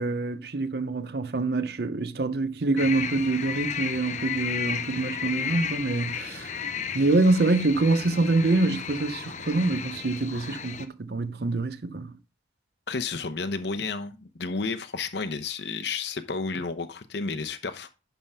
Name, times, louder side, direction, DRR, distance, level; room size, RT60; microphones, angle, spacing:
voice 1, 0.0-6.5 6.9-12.1, right 2 dB, 55° right, 0.6 m, -25 dB
sound 1, 2.8-10.9, left 7 dB, 40° left, 0.6 m, -34 dB
voice 2, 12.9-17.9, left 4 dB, 65° left, 0.9 m, -31 dB
10.0 x 3.6 x 5.6 m
head